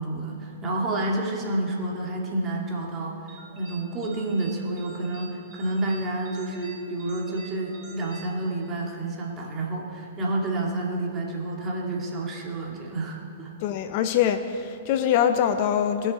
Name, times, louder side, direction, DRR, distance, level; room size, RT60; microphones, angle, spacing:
voice 1, 0.0-13.5, right 2 dB, 25° right, -2 dB, 2.2 m, -29 dB
sound 1, 3.3-9.0, right 4 dB, 50° right, 2.5 m, -48 dB
voice 2, 13.6-16.1, left 9 dB, 50° left, 9 dB, 0.6 m, -23 dB
19.0 x 6.6 x 4.3 m, 2.5 s
hypercardioid pair, 125°, 0 cm